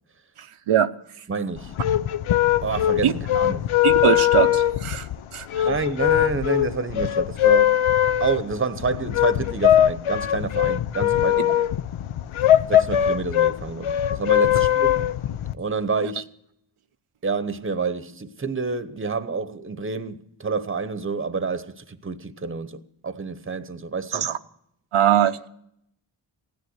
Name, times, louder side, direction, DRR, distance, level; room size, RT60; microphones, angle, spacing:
voice 1, 1.3-1.8 2.6-3.7 5.6-7.8 8.2-11.6 12.7-15.0 15.6-16.3 17.2-24.3, right 4 dB, 25° right, 1.0 m, -28 dB
sound 1, 1.6-15.5, left 12 dB, 75° left, 0.7 m, -21 dB
voice 2, 3.8-5.1 5.3-5.7 24.1-24.4 24.9-25.5, right 10 dB, 85° right, 0.8 m, -21 dB
16.0 x 10.0 x 7.9 m
wide cardioid pair, 85°, 49 cm